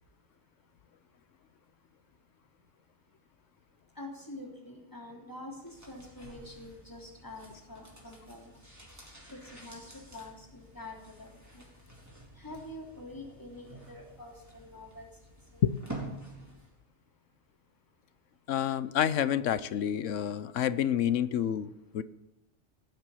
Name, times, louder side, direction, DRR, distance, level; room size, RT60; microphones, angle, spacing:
voice 1, 4.0-8.5 9.6-11.3 11.5-11.6 12.4-15.1 15.5-15.6, left 1 dB, 15° left, -1 dB, 3.4 m, -46 dB
sound 1, 5.6-16.8 17.1-17.2, right 2 dB, 15° right, 4.1 m, -49 dB
voice 2, 18.5-21.7 21.9-22.0, left 10 dB, 85° left, 15 dB, 1.1 m, -28 dB
18.5 x 7.6 x 8.5 m, 0.92 s
omnidirectional pair, 1.2 m